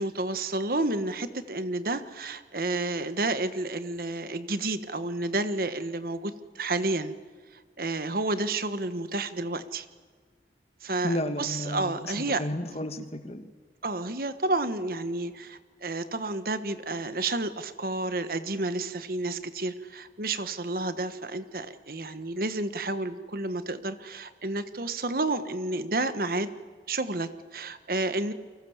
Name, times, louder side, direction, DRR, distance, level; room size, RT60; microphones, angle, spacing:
voice 1, 0.0-7.1 7.8-9.9 10.8-12.4 13.8-26.5 26.9-28.3, right 2 dB, 55° right, 11 dB, 1.4 m, -30 dB
voice 2, 11.0-12.1 12.4-13.5, left 1 dB, 35° left, 9 dB, 1.6 m, -32 dB
29.5 x 24.0 x 7.3 m, 1.5 s
head